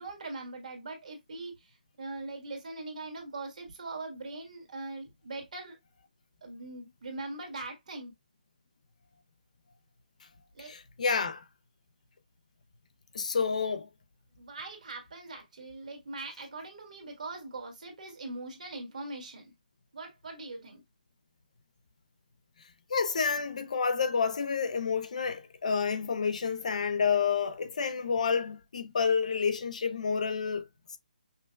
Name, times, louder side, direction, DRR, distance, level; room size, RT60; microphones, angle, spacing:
voice 1, 0.0-5.8 6.4-8.1 10.5-10.7 14.4-19.5 19.9-20.8, right 2 dB, 55° right, 1.5 m, -41 dB
voice 2, 10.7-11.4 13.1-13.9 22.9-30.7, left 5 dB, 50° left, 0.5 m, -29 dB
5.5 x 2.0 x 2.3 m
hypercardioid pair, 170°, 5 cm